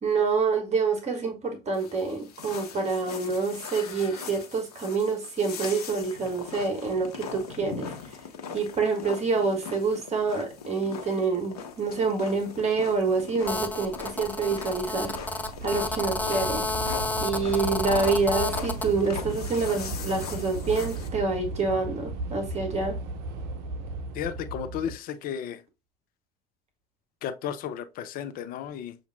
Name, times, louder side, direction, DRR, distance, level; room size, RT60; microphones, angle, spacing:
voice 1, 0.0-8.0 8.5-16.6 17.2-23.0, right 4 dB, 35° right, 1.3 m, -27 dB
sound 1, 1.7-21.1, left 6 dB, 75° left, 1.1 m, -40 dB
Train / Subway metro underground, 11.9-12.1 12.4-24.9, right 2 dB, 55° right, 0.7 m, -36 dB
Telephone, 13.5-18.9, left 2 dB, 10° left, 0.8 m, -31 dB
voice 2, 24.1-25.6 27.2-29.0, left 8 dB, 45° left, 0.6 m, -34 dB
6.9 x 2.6 x 2.2 m
figure-of-eight pair, 60°, 20 cm